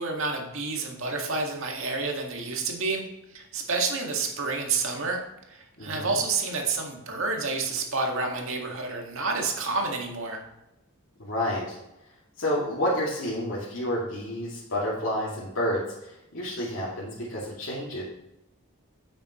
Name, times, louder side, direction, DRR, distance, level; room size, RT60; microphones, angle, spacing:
voice 1, 0.0-3.0 3.3-5.2 5.5-10.4, right 3 dB, 65° right, 1 dB, 2.0 m, -29 dB
voice 2, 5.8-6.1 11.2-11.8 12.4-18.0, equal, 65° left, -8 dB, 2.6 m, -30 dB
9.6 x 8.7 x 3.1 m, 0.91 s
head